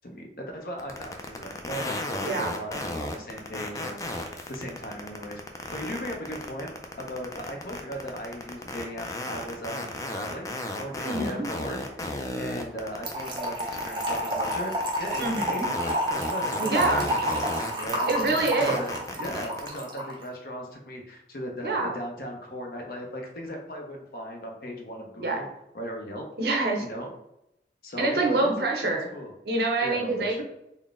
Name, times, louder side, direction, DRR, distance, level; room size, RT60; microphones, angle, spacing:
voice 1, 0.0-5.4 5.7-6.7 7.0-25.5 25.7-26.2 26.8-27.1 27.8-29.3 29.8-30.4, equal, 55° left, 2 dB, 0.7 m, -38 dB
sound 1, 0.8-19.8, left 1 dB, 20° left, 0.3 m, -34 dB
voice 2, 2.2-2.5 11.0-11.4 15.2-15.7 16.6-17.1 18.1-18.8 21.6-22.0 25.2-25.5 26.4-26.8 28.0-29.1 29.5-30.4, right 3 dB, 65° right, 1 dB, 0.7 m, -26 dB
Trickle dribble / Fill (with liquid), 13.0-20.1, equal, 25° right, 0.6 m, -30 dB
3.9 x 2.1 x 3.5 m, 0.85 s
head